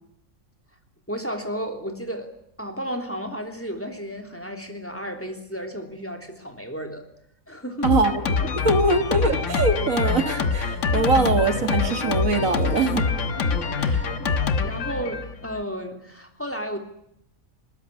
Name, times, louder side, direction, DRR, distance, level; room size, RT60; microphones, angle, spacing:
voice 1, 1.1-2.3 2.6-7.0 7.5-8.0 13.3-14.3 14.6-16.8, equal, 10° left, 4 dB, 3.2 m, -33 dB
Drum kit, 7.8-15.6, left 5 dB, 60° left, 1.5 m, -25 dB
voice 2, 7.8-8.2 8.6-13.1, right 3 dB, 70° right, 8 dB, 2.3 m, -22 dB
sound 1, 8.2-15.2, left 1 dB, 80° left, 3.8 m, -39 dB
20.5 x 20.5 x 9.9 m, 0.75 s
omnidirectional pair, 1.5 m